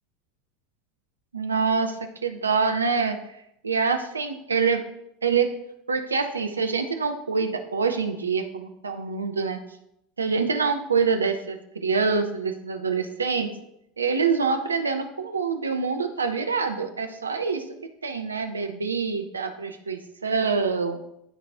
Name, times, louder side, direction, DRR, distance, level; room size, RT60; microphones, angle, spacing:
voice 1, 1.3-3.2 3.6-4.8 5.2-5.6 5.9-9.6 10.2-13.5 14.0-17.7 18.0-21.0, right 5 dB, 80° right, 6 dB, 0.7 m, -25 dB
12.0 x 4.1 x 3.5 m, 0.78 s
figure-of-eight pair, 80°, 0 cm